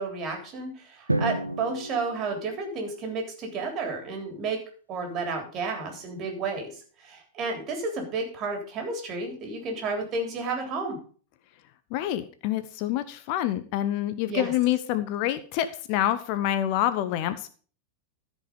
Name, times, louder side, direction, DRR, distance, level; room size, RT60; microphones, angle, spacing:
voice 1, 0.0-4.6 4.9-11.0 14.2-14.5, right 4 dB, 35° right, 3 dB, 3.5 m, -32 dB
Drum, 1.1-3.2, right 1 dB, 85° right, 0.8 m, -31 dB
voice 2, 11.9-17.5, left 12 dB, 45° left, 13 dB, 0.7 m, -27 dB
14.0 x 5.3 x 5.2 m, 0.41 s
figure-of-eight pair, 90°, 0 cm